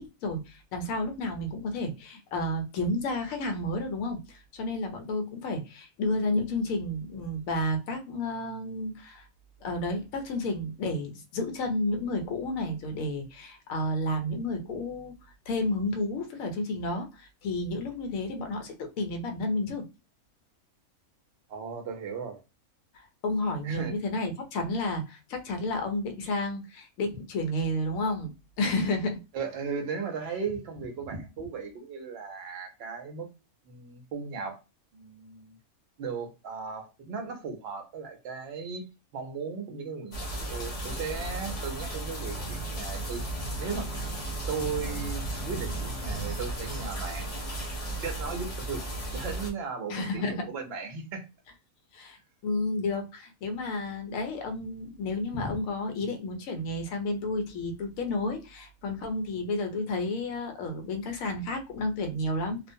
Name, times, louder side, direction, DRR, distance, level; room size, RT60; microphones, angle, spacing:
voice 1, 0.0-9.3 9.6-15.1 15.5-19.9 23.2-29.2 49.9-50.5 51.9-52.2 52.4-62.6, left 2 dB, 70° left, 1.0 m, -31 dB
voice 2, 21.5-22.4 23.6-24.0 29.3-33.3 33.6-34.6 34.9-35.6 36.0-38.8 39.1-43.2 43.6-43.9 44.5-51.3 55.3-55.6, right 5 dB, 60° right, 0.7 m, -36 dB
sound 1, 40.1-49.5, right 1 dB, 50° left, 0.4 m, -34 dB
2.4 x 2.1 x 2.6 m
omnidirectional pair, 1.5 m